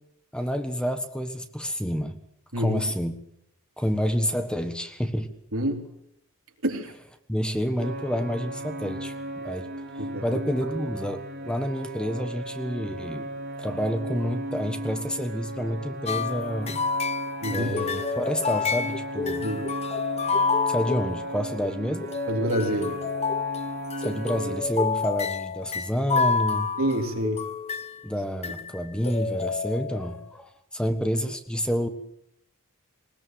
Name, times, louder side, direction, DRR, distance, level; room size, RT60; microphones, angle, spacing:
voice 1, 0.3-2.2 2.6-3.1 3.8-5.3 7.3-9.7 9.9-13.3 13.6-16.7 17.5-19.5 20.7-22.1 24.0-26.7 28.0-31.9, equal, 5° left, 7 dB, 1.4 m, -29 dB
voice 2, 5.5-5.8 6.6-6.9 10.0-10.2 17.4-17.7 19.4-19.6 22.3-23.0 26.8-27.4, right 1 dB, 70° right, 3 dB, 3.4 m, -27 dB
sound 1, 7.8-24.6, right 1 dB, 50° right, 4.2 m, -36 dB
sound 2, 16.1-21.7 22.0-28.0 28.4-28.8 29.0-30.2, left 5 dB, 30° left, 0.9 m, -29 dB
20.5 x 20.0 x 7.8 m, 0.73 s
head